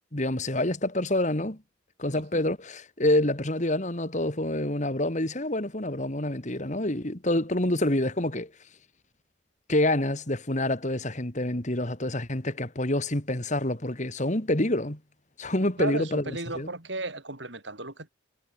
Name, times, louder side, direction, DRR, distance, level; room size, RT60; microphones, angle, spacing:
voice 1, 0.1-1.6 2.0-8.5 9.7-15.0 15.4-16.7, left 1 dB, 40° left, 2.5 m, -27 dB
voice 2, 2.1-2.5 15.8-18.1, right 2 dB, 70° right, 7.1 m, -35 dB
head